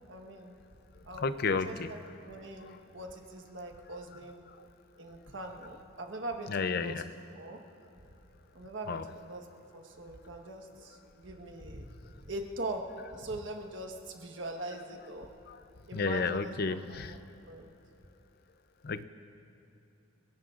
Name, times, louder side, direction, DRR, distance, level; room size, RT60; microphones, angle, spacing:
voice 1, 0.1-0.5 1.0-4.4 5.0-7.1 7.3-7.6 8.5-9.5 9.7-11.9 12.2-12.8 13.1-15.3 15.9-16.6 16.9-17.7, right 2 dB, 60° right, 2 dB, 1.3 m, -42 dB
voice 2, 1.2-1.9 6.5-7.0 8.9-9.0 15.9-17.1 18.8-19.1, left 4 dB, 50° left, 12 dB, 0.5 m, -31 dB
30.0 x 17.0 x 2.5 m, 2.7 s
head